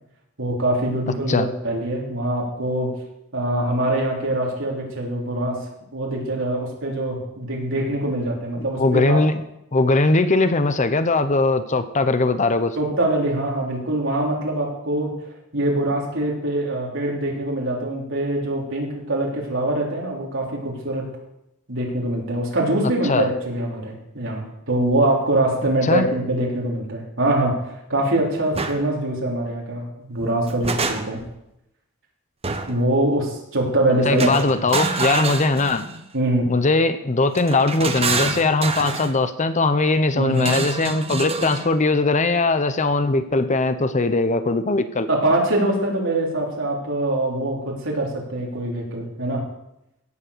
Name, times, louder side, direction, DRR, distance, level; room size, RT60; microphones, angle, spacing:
voice 1, 0.4-3.0 3.3-9.2 12.8-15.1 15.5-21.1 21.7-31.2 32.7-34.6 36.1-36.5 40.1-40.6 45.1-49.4, right 1 dB, 65° right, -2 dB, 3.9 m, -23 dB
voice 2, 8.8-9.4 9.7-12.8 23.1-23.3 25.9-26.1 34.0-35.9 36.5-45.1, left 3 dB, 35° left, 11 dB, 0.8 m, -20 dB
sound 1, 28.5-28.8 30.2-31.3 32.4-32.9 34.2-36.0 37.3-39.1 40.4-41.7, right 3 dB, 30° right, 1.2 m, -27 dB
16.5 x 7.4 x 6.8 m, 0.85 s
head